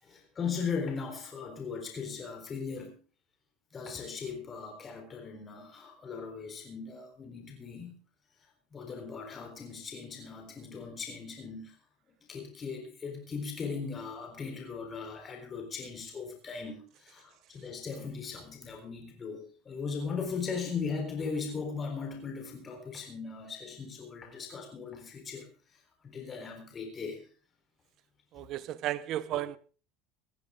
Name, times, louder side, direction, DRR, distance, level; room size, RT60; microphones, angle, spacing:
voice 1, 0.0-3.0 3.7-7.9 8.4-11.8 12.3-27.3 28.3-28.4 29.3-29.4, left 5 dB, 25° left, 3.9 m, -38 dB
voice 2, 28.3-29.6, right 13 dB, 50° right, 0.9 m, -34 dB
17.5 x 14.0 x 3.7 m
supercardioid pair, 120°, 0 cm